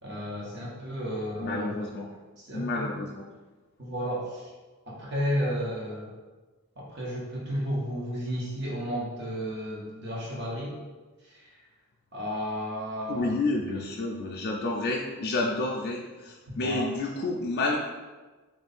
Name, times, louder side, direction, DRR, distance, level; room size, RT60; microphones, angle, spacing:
voice 1, 0.0-1.7 2.4-2.9 3.8-4.5 4.8-6.1 6.8-10.8 11.2-11.5 12.1-13.3 16.5-16.9, equal, 50° right, -5 dB, 1.1 m, -33 dB
voice 2, 1.3-2.1 2.5-3.2 13.1-17.8, left 2 dB, 45° left, -1 dB, 0.3 m, -30 dB
3.6 x 2.4 x 4.1 m, 1.3 s
head